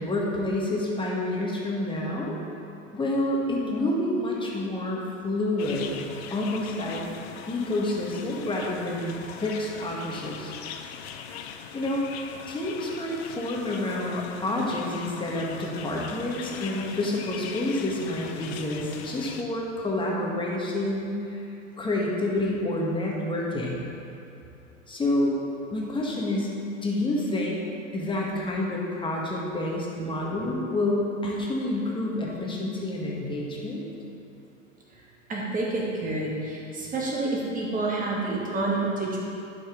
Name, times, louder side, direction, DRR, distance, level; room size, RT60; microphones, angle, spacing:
voice 1, 0.0-2.4 2.9-6.0 6.3-7.0 7.5-10.5 11.7-12.0 12.5-21.4 21.8-23.9 24.9-25.4 25.7-26.5 26.8-27.6 27.9-33.8, left 1 dB, 10° left, -3 dB, 1.6 m, -28 dB
sound 1, 5.6-19.4, left 8 dB, 50° left, 0.7 m, -41 dB
voice 2, 35.3-39.2, right 2 dB, 20° right, -4 dB, 1.9 m, -28 dB
11.5 x 5.8 x 3.8 m, 2.8 s
figure-of-eight pair, 95°, 39 cm